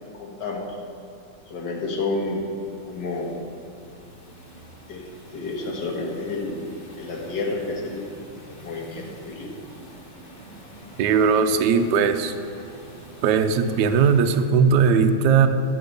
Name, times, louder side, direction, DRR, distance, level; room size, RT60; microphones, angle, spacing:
voice 1, 0.2-0.7 1.5-2.5 2.8-3.4 4.9-5.1 5.3-6.6 7.0-8.0 8.6-9.5, left 3 dB, 60° left, 0 dB, 2.2 m, -30 dB
sound 1, 1.1-14.4, right 1 dB, 35° left, 2.0 m, -47 dB
voice 2, 11.0-12.3 13.2-15.5, right 6 dB, 70° right, 8 dB, 1.2 m, -19 dB
11.5 x 7.5 x 6.7 m, 2.7 s
omnidirectional pair, 2.1 m